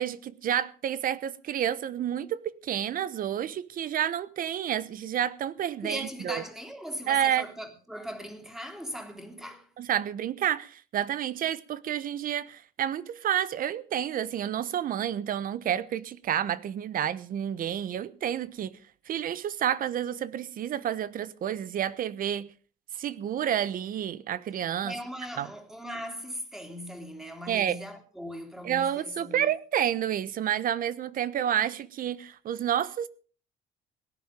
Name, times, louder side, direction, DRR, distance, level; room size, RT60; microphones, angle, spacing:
voice 1, 0.0-6.4 7.1-7.5 9.8-18.8 19.1-22.5 22.9-24.9 25.4-25.5 27.5-27.8 28.6-33.1, right 10 dB, 55° right, 1.1 m, -30 dB
voice 2, 5.8-9.7 24.8-29.5, equal, 5° right, 3.4 m, -39 dB
17.5 x 11.0 x 5.2 m
cardioid pair, 110°, 17 cm